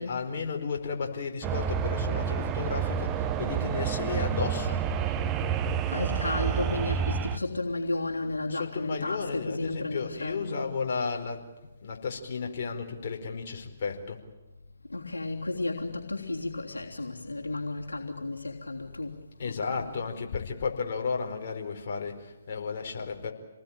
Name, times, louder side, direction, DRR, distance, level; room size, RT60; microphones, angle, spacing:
voice 1, 0.0-4.8 8.5-11.5 11.8-14.2 19.4-23.3, left 5 dB, 50° left, 4.7 m, -33 dB
sound 1, 1.4-7.4, right 8 dB, 20° right, 1.3 m, -29 dB
voice 2, 5.9-10.7 14.9-19.2 19.4-20.0, left 2 dB, 90° left, 3.3 m, -33 dB
28.5 x 19.5 x 9.0 m
figure-of-eight pair, 140°, 0 cm